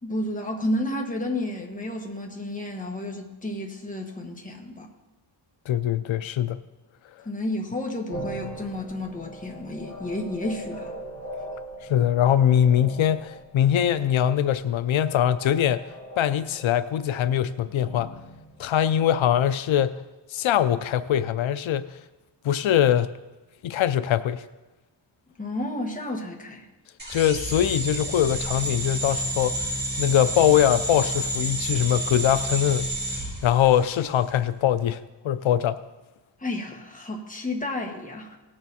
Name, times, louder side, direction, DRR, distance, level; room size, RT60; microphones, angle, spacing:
voice 1, 0.0-4.9 7.2-10.9 25.4-26.7 36.4-38.4, left 1 dB, 15° left, 1 dB, 1.5 m, -31 dB
voice 2, 5.7-6.6 11.9-15.8 16.2-18.1 18.6-20.0 20.3-21.9 22.4-23.2 23.6-24.4 27.1-29.7 30.0-32.9 33.4-35.8, left 10 dB, 90° left, 13 dB, 0.6 m, -22 dB
sound 1, 8.1-19.5, equal, 30° left, 3.0 m, -41 dB
sound 2, 27.0-34.1, right 1 dB, 20° right, 4.6 m, -30 dB
18.0 x 6.8 x 4.2 m, 1.1 s
wide cardioid pair, 140°, 46 cm